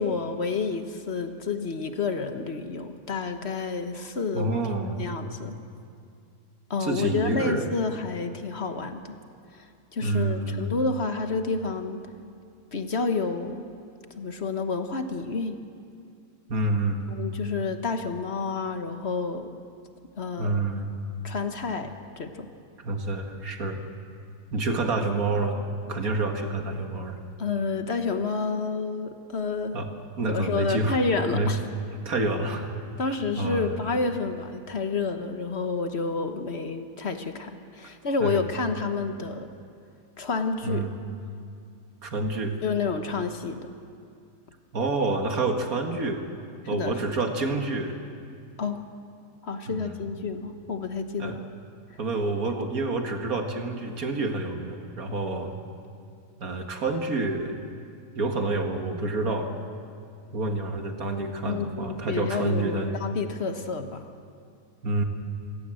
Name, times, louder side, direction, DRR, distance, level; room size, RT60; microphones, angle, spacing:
voice 1, 0.0-4.6 5.0-5.5 6.7-9.2 9.5-9.6 9.9-12.0 12.7-13.6 14.2-15.6 17.1-19.5 20.2-20.6 21.2-22.5 27.4-29.8 30.3-31.6 33.0-39.5 40.2-40.8 42.6-43.7 46.7-46.9 48.6-48.8 49.4-51.4 51.9-52.0 61.4-64.1, left 4 dB, 50° left, 7 dB, 1.4 m, -29 dB
voice 2, 4.3-5.1 6.8-7.8 10.0-10.7 16.5-17.1 20.4-20.9 22.8-23.8 24.5-25.6 25.9-27.2 29.7-29.9 30.2-31.0 31.3-31.5 32.1-32.7 33.4-33.7 38.2-38.4 40.6-40.9 42.0-42.5 44.7-46.2 46.7-48.0 49.7-50.0 51.2-51.4 52.0-55.6 56.4-57.6 58.1-59.5 60.3-63.0 64.8-65.0, right 2 dB, 80° right, 4 dB, 2.3 m, -28 dB
27.5 x 16.5 x 7.8 m, 2.4 s
omnidirectional pair, 1.5 m